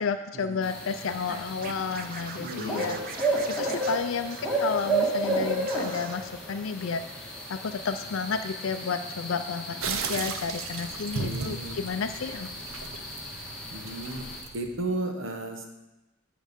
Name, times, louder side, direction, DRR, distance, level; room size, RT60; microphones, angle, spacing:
voice 1, 0.0-3.3 3.6-12.5, left 5 dB, 75° left, 8 dB, 0.5 m, -32 dB
sound 1, 0.6-14.4, right 2 dB, 5° left, 1.7 m, -33 dB
Scratching (performance technique), 1.6-4.9 5.2-5.4 5.7-6.2, right 5 dB, 45° right, 0.6 m, -42 dB
voice 2, 2.4-3.1 11.2-11.8 13.7-14.3 14.5-15.6, right 1 dB, 65° right, 4 dB, 1.1 m, -34 dB
sound 2, 9.8-14.9, right 5 dB, 90° right, 0.6 m, -36 dB
8.6 x 5.0 x 5.2 m, 1.0 s
head